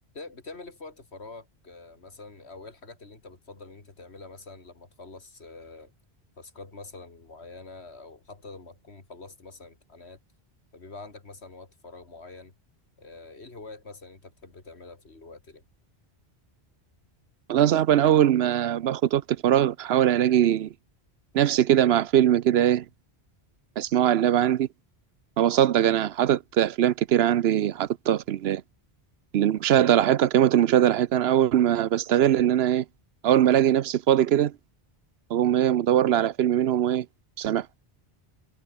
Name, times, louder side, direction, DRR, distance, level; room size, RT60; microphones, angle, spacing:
voice 1, 0.1-5.9 6.4-10.2 10.7-12.5 13.0-15.6, left 3 dB, 85° left, 3.1 m, -45 dB
voice 2, 17.5-20.7 21.3-22.8 23.8-24.7 25.4-28.6 29.3-32.8 33.2-34.5 35.3-37.1 37.4-37.7, right 11 dB, 75° right, 0.9 m, -21 dB
omnidirectional pair, 1.1 m